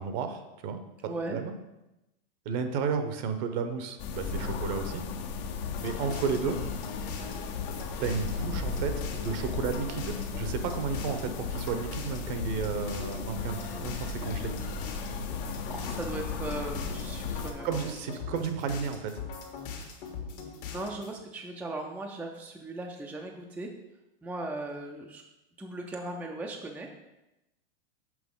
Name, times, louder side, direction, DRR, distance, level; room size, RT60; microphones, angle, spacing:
voice 1, 0.0-1.5 2.4-5.0 5.8-6.6 8.0-14.5 17.6-19.2, right 6 dB, 50° right, 8 dB, 0.8 m, -33 dB
voice 2, 1.0-1.4 15.7-17.9 20.7-23.7 24.2-25.2 25.6-26.9, right 2 dB, 5° right, 1 dB, 0.4 m, -38 dB
sound 1, 4.0-17.5, left 4 dB, 35° left, 0.6 m, -36 dB
sound 2, 5.6-21.2, left 5 dB, 65° left, 1.5 m, -40 dB
6.0 x 5.6 x 3.7 m, 0.95 s
hypercardioid pair, 120°, 30 cm